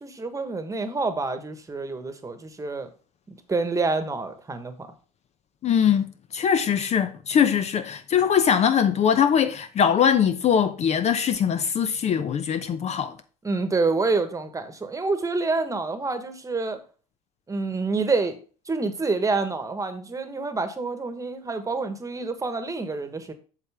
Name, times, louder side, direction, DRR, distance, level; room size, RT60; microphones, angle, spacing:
voice 1, 0.0-2.9 3.3-4.9 13.4-16.8 17.5-18.4 18.7-23.3, right 3 dB, 15° right, 1.4 m, -27 dB
voice 2, 5.6-13.2, left 8 dB, 35° left, 0.8 m, -22 dB
8.0 x 6.6 x 3.5 m
hypercardioid pair, 85°, 19 cm